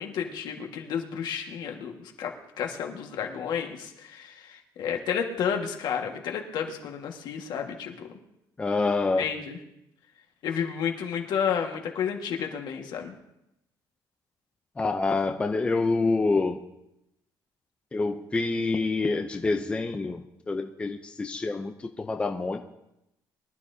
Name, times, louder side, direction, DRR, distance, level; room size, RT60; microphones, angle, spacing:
voice 1, 0.0-8.1 9.2-9.6 10.4-13.2, left 7 dB, 65° left, 3 dB, 1.6 m, -31 dB
voice 2, 8.6-9.3 14.8-16.6 17.9-22.6, left 3 dB, 15° left, 5 dB, 0.5 m, -27 dB
23.0 x 12.0 x 2.7 m, 0.86 s
cardioid pair, 160°, 8 cm